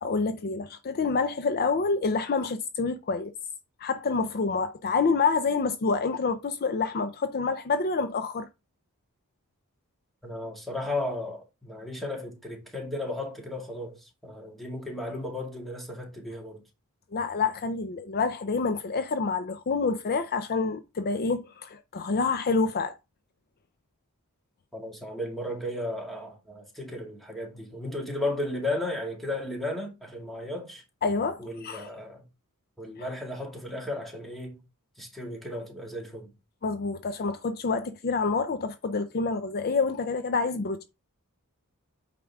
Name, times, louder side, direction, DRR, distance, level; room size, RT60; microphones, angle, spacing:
voice 1, 0.0-3.3 3.8-8.5 17.1-23.0 31.0-31.9 33.0-33.1 36.6-40.8, left 4 dB, 45° left, 0.5 m, -27 dB
voice 2, 10.2-16.6 24.7-30.8 31.4-32.3 32.8-34.6 35.0-36.3, left 1 dB, ahead, 2.1 m, -34 dB
8.5 x 5.1 x 3.5 m
head